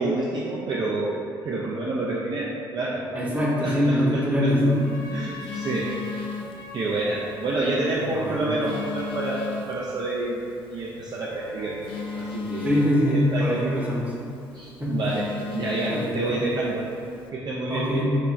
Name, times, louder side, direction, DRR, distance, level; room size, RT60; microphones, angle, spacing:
voice 1, 0.0-3.0 3.6-4.5 5.1-5.9 6.7-11.8 12.2-12.7 13.1-13.8 14.5-15.3 15.5-16.9 17.3-17.9, right 2 dB, 40° right, -6 dB, 0.5 m, -28 dB
voice 2, 3.1-4.8 8.0-8.5 12.6-14.1 14.8-15.0 15.9-16.2 17.7-18.2, equal, 15° right, -5 dB, 0.9 m, -23 dB
Telephone, 4.5-17.3, left 5 dB, 50° left, 0.4 m, -38 dB
Trumpet, 4.6-10.1, left 1 dB, 30° left, 0.8 m, -42 dB
Bowed string instrument, 11.2-15.6, left 2 dB, 80° left, 0.9 m, -44 dB
3.8 x 2.2 x 3.2 m, 2.5 s
figure-of-eight pair, 50°, 12 cm